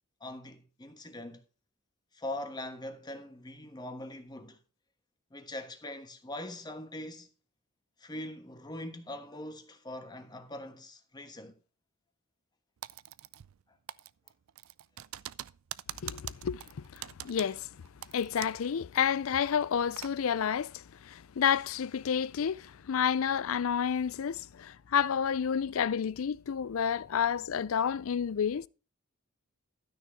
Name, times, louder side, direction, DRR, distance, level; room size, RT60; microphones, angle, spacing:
voice 1, 0.2-1.4 2.1-4.6 5.3-7.3 8.0-11.6, left 1 dB, 20° left, 1.3 m, -42 dB
Typing, 12.8-13.6 13.9-18.7 19.0-19.1 19.6-20.1, right 13 dB, 75° right, 0.4 m, -44 dB
voice 2, 16.0-17.7 18.1-28.7, left 7 dB, 75° left, 0.4 m, -30 dB
12.5 x 6.4 x 4.6 m
head